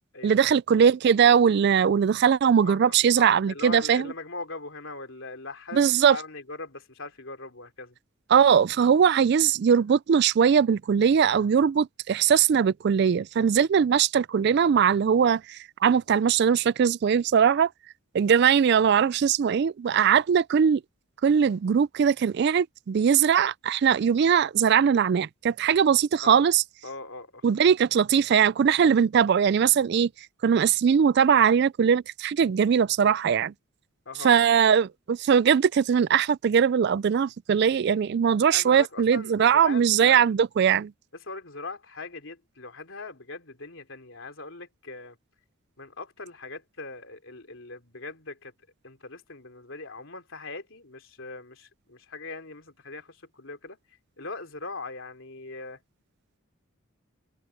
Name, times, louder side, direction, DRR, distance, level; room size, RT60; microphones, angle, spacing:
voice 1, 0.2-4.1 5.7-6.2 8.3-17.7 18.1-20.8 21.2-26.6 27.4-30.1 30.4-33.5 34.2-40.9, right 7 dB, 50° right, 0.3 m, -21 dB
voice 2, 2.6-7.9 26.2-26.4 26.8-27.4 34.1-34.5 38.5-40.2 41.3-45.2 45.8-48.5 48.8-53.8 54.2-55.8, left 3 dB, 65° left, 3.5 m, -40 dB
head